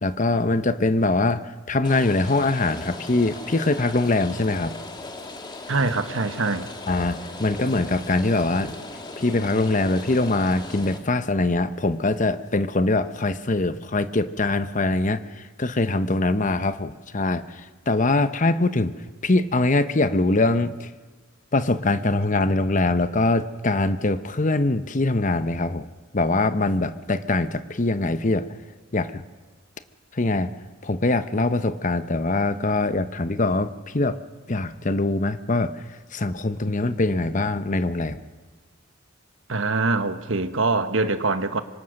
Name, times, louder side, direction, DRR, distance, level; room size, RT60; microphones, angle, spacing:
voice 1, 0.0-4.7 6.9-8.7 9.2-18.9 19.2-20.9 21.5-25.9 26.1-28.5 28.9-29.2 30.1-30.5 30.8-34.2 34.5-35.8 36.1-38.2, left 2 dB, 40° left, 1.0 m, -23 dB
Rain, 1.8-11.0, left 2 dB, 20° left, 2.1 m, -38 dB
voice 2, 5.7-6.7 39.5-41.6, right 3 dB, 75° right, 1.4 m, -24 dB
26.0 x 24.0 x 6.6 m
head